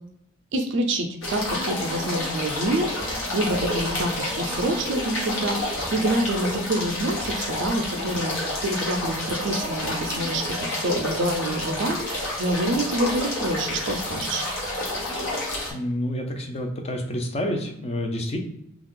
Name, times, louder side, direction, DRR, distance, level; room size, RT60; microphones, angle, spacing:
voice 1, 0.5-2.9 3.3-8.4 8.6-14.5, right 1 dB, 60° right, 5 dB, 0.4 m, -27 dB
sound 1, 1.2-15.7, left 1 dB, 75° left, 1.0 m, -29 dB
voice 2, 15.7-18.4, equal, 30° left, 2 dB, 0.5 m, -28 dB
2.4 x 2.3 x 3.6 m, 0.77 s
head